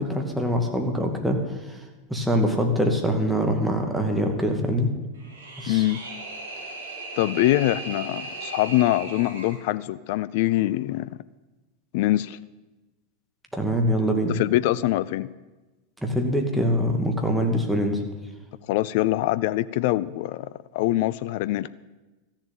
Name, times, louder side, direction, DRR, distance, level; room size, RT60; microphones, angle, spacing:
voice 1, 0.0-1.4 1.7-1.8 2.1-4.9 5.6-5.8 13.5-14.3 16.0-18.0, equal, 5° right, 2 dB, 2.4 m, -24 dB
sound 1, 5.1-9.6, right 3 dB, 70° right, 2.9 m, -37 dB
voice 2, 5.7-6.0 7.2-11.2 11.9-12.4 14.3-15.3 18.7-21.7, left 16 dB, 55° left, 17 dB, 0.4 m, -24 dB
14.0 x 7.3 x 9.1 m, 1.2 s
figure-of-eight pair, 90°, 0 cm